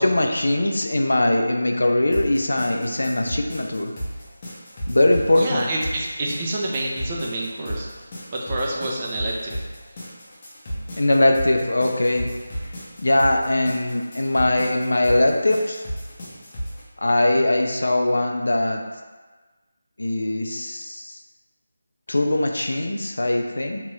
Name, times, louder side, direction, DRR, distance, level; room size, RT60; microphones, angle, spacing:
voice 1, 0.0-3.9 4.9-5.6 11.0-12.3 13.0-15.8 17.0-18.8 20.0-21.2 22.1-23.8, left 1 dB, 85° left, 3 dB, 0.4 m, -21 dB
sound 1, 2.1-16.8, equal, 25° left, 0.6 m, -34 dB
voice 2, 5.3-7.9 8.3-9.7, right 1 dB, 25° right, -2 dB, 0.4 m, -27 dB
2.8 x 2.3 x 3.1 m, 1.3 s
figure-of-eight pair, 170°, 0 cm